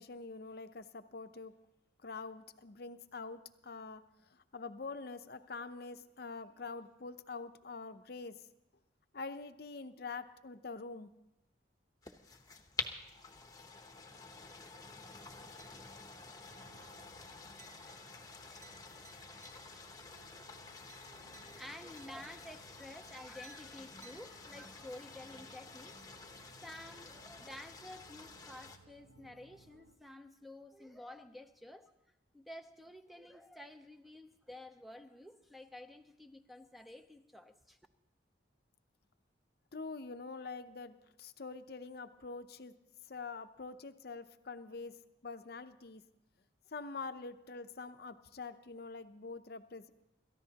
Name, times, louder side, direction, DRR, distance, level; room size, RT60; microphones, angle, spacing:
voice 1, 0.0-1.5 2.0-4.0 4.3-8.4 9.1-11.1 39.7-42.7 43.1-45.0 45.2-46.0 46.7-49.9, left 4 dB, 55° left, 9 dB, 0.7 m, -45 dB
sound 1, 12.0-28.8, left 4 dB, 20° left, 0.9 m, -49 dB
sound 2, 15.6-16.1 16.5-16.9 17.6-20.0 20.9-22.8 23.4-24.9, right 3 dB, 40° right, 3.1 m, -63 dB
sound 3, 16.4-29.9, right 3 dB, 75° right, 0.9 m, -63 dB
voice 2, 21.1-25.9 26.6-31.9 32.3-37.8, left 1 dB, ahead, 7 dB, 0.6 m, -51 dB
28.0 x 14.0 x 2.9 m, 0.88 s
head